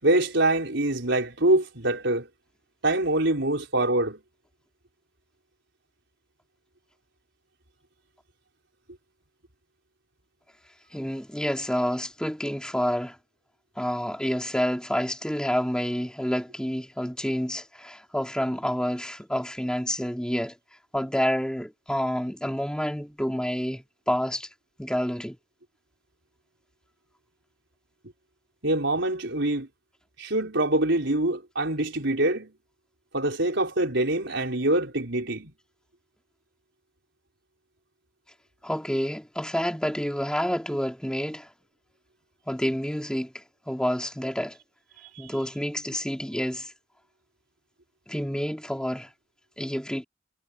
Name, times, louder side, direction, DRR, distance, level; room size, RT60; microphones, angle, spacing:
voice 1, 0.0-2.3 2.8-4.2 28.6-29.7 30.2-32.5 33.1-35.5 45.2-45.3, right 1 dB, 65° right, 5.8 m, -24 dB
voice 2, 10.9-13.2 13.8-20.6 20.9-24.5 24.8-25.4 38.6-41.5 42.5-44.6 45.2-46.7 48.1-49.1 49.6-50.0, equal, 5° left, 3.5 m, -28 dB
head